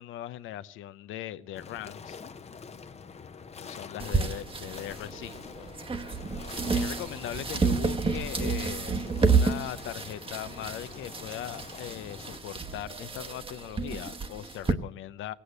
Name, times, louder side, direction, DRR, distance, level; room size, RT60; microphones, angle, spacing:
voice 1, 0.0-2.2 3.6-5.7 6.7-15.3, left 12 dB, 85° left, 15 dB, 0.6 m, -39 dB
sound 1, 1.5-12.4, left 5 dB, 35° left, 0.8 m, -45 dB
sound 2, 4.0-14.7, right 4 dB, 25° right, 1.1 m, -30 dB
17.0 x 8.4 x 8.1 m, 0.74 s
cardioid pair, 90°, 20 cm